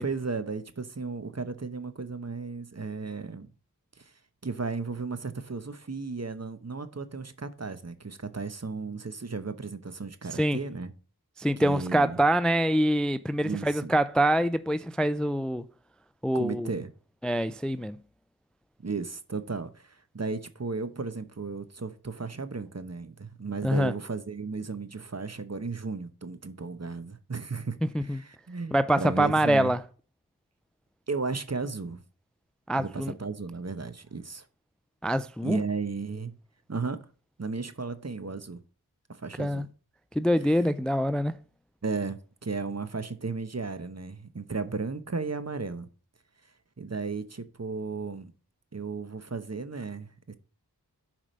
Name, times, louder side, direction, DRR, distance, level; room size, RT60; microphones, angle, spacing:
voice 1, 0.0-3.5 4.0-4.1 4.4-10.9 11.6-12.2 13.4-13.9 16.3-16.9 18.8-29.7 31.1-32.0 32.7-34.5 35.4-36.3 36.7-37.0 37.4-38.6 39.1-39.7 41.8-45.9 46.8-48.3 48.7-50.3, right 4 dB, 40° right, 1.0 m, -35 dB
voice 2, 11.4-15.6 16.2-16.7 17.2-18.0 23.6-23.9 27.9-28.2 28.7-29.8 32.7-33.1 35.0-35.6 39.4-39.6 40.2-41.4, right 1 dB, ahead, 0.4 m, -25 dB
7.4 x 4.9 x 6.6 m
wide cardioid pair, 40°, 38 cm